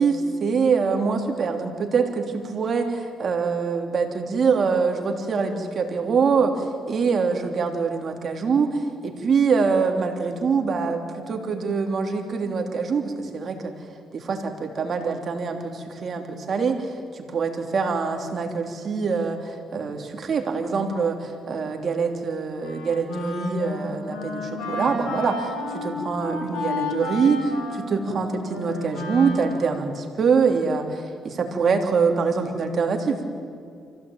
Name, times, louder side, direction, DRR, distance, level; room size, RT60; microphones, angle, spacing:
voice 1, 0.0-2.2 2.5-6.5 6.9-13.7 14.1-16.9 17.1-33.2, right 5 dB, 50° right, 3 dB, 3.3 m, -24 dB
Wind instrument woodwind instrument, 22.6-29.9, left 2 dB, 80° left, 7.5 m, -32 dB
25.0 x 16.0 x 8.8 m, 2.4 s
cardioid pair, 90°, 0 cm